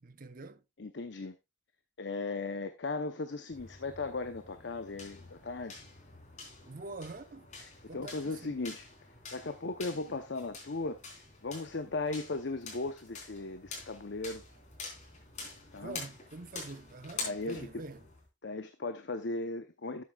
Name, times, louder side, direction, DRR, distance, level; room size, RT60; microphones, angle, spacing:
voice 1, 0.0-0.6 6.7-7.5 7.9-8.6 15.8-18.1, right 3 dB, 50° right, 0.8 m, -45 dB
voice 2, 0.8-1.3 2.0-5.7 7.6-8.9 9.3-11.0 11.4-14.4 15.7-16.0 17.2-17.8 18.4-20.0, left 3 dB, 70° left, 0.7 m, -37 dB
sound 1, 3.5-18.3, left 3 dB, 40° left, 3.9 m, -47 dB
12.0 x 8.4 x 2.3 m
head